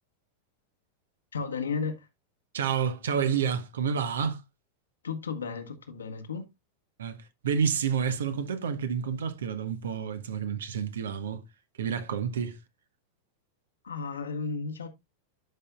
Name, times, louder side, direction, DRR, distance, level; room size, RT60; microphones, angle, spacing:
voice 1, 1.3-2.1 5.0-6.4 13.8-14.9, left 5 dB, 70° left, 1.4 m, -33 dB
voice 2, 2.5-4.4 7.0-11.4 11.8-12.6, right 7 dB, 65° right, 1.1 m, -29 dB
12.0 x 5.6 x 2.4 m
figure-of-eight pair, 90°, 0 cm